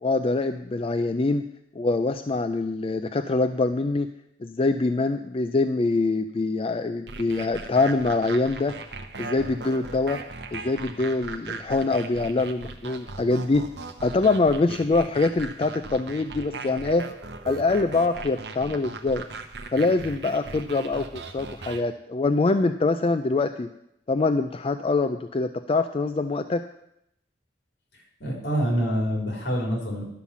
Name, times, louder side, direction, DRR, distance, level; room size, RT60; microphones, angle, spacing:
voice 1, 0.0-1.4 1.8-4.1 4.4-8.8 9.2-10.2 10.5-13.7 14.0-17.1 17.5-19.2 19.7-23.7 24.1-26.6, left 3 dB, 30° left, 8 dB, 0.4 m, -24 dB
Good For Trance, 7.1-21.8, right 3 dB, 70° right, 0.9 m, -39 dB
voice 2, 28.2-30.0, equal, 70° left, 0 dB, 3.3 m, -26 dB
11.5 x 5.6 x 7.3 m, 0.78 s
head